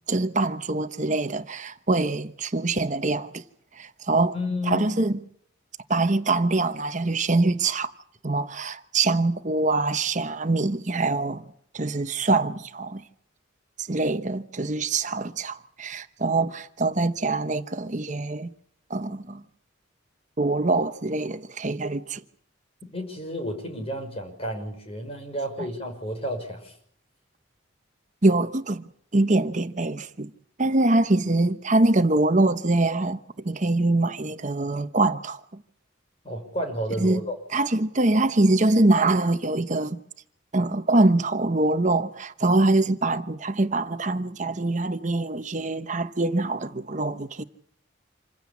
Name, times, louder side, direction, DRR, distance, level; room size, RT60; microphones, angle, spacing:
voice 1, 0.1-3.4 3.8-4.3 4.7-5.1 5.9-7.9 8.2-11.4 11.7-13.0 13.8-18.5 18.9-19.4 20.4-22.2 28.2-28.8 29.1-30.3 30.6-33.2 33.4-35.4 37.0-37.2 37.5-40.0 40.5-47.4, right 2 dB, 40° right, 1.0 m, -24 dB
voice 2, 4.3-4.9 22.9-26.7 36.2-37.3, equal, 30° left, 5.9 m, -31 dB
27.5 x 16.0 x 8.5 m
head